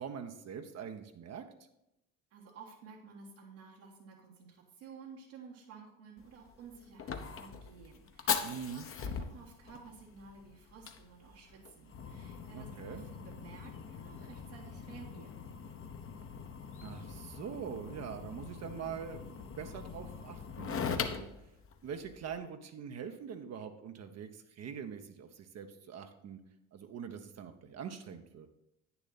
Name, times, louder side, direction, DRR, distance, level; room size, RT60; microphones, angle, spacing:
voice 1, 0.0-1.5 8.4-8.9 12.5-13.1 16.8-21.3 21.8-26.4 26.7-28.5, right 7 dB, 40° right, 6 dB, 0.9 m, -43 dB
voice 2, 2.3-15.5, right 5 dB, 70° right, -5 dB, 1.6 m, -53 dB
Fire, 6.2-22.4, left 6 dB, 35° left, 1.0 m, -41 dB
9.2 x 6.9 x 4.1 m, 0.87 s
hypercardioid pair, 65°, 39 cm